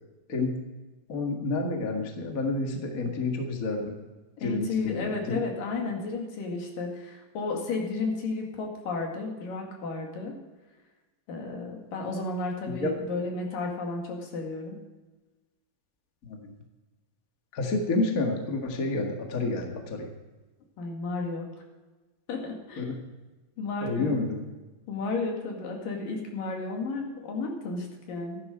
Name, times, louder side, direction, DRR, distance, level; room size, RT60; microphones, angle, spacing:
voice 1, 1.1-3.9 4.4-5.4 12.7-13.0 16.2-16.4 17.5-20.1 22.8-23.0 23.8-24.4, left 3 dB, 35° left, 2 dB, 1.4 m, -29 dB
voice 2, 4.4-10.3 11.3-14.8 20.8-21.5 22.3-22.8 23.6-24.2 24.9-28.4, left 3 dB, 70° left, 1 dB, 3.8 m, -33 dB
14.5 x 11.5 x 5.1 m, 1.2 s
omnidirectional pair, 4.1 m